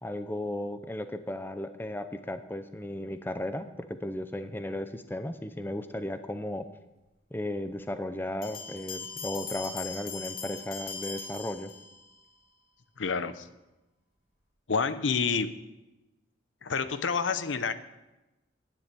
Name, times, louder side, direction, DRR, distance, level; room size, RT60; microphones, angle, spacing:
voice 1, 0.0-6.6 7.3-11.7, left 1 dB, 10° left, 9 dB, 0.6 m, -35 dB
sound 1, 8.4-12.2, left 5 dB, 50° left, 2.2 m, -40 dB
voice 2, 13.0-13.5 14.7-15.5 16.6-17.7, left 5 dB, 75° left, 12 dB, 0.7 m, -28 dB
9.9 x 7.9 x 8.9 m, 1.0 s
head